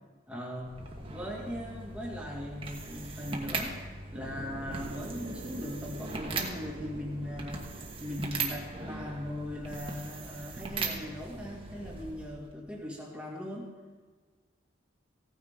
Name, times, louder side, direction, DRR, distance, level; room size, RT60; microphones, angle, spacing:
voice 1, 0.3-3.8 4.1-13.7, left 1 dB, 5° right, -3 dB, 2.0 m, -39 dB
sound 1, 0.6-12.5, right 3 dB, 30° right, 1.3 m, -39 dB
sound 2, 4.1-10.2, right 1 dB, 80° right, 1.8 m, -47 dB
16.5 x 9.5 x 3.7 m, 1.4 s
head